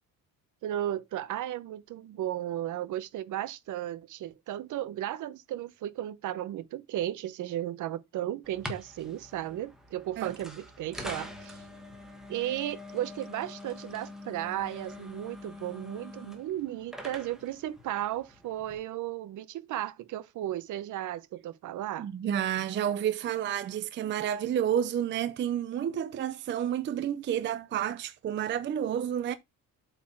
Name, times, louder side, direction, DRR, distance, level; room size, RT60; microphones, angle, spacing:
voice 1, 0.6-11.6 12.3-22.1, right 13 dB, 60° right, 0.7 m, -35 dB
sound 1, 8.4-18.8, left 1 dB, ahead, 1.5 m, -45 dB
voice 2, 22.0-29.4, right 10 dB, 35° right, 0.5 m, -30 dB
8.0 x 4.3 x 4.4 m
cardioid pair, 155°, 35 cm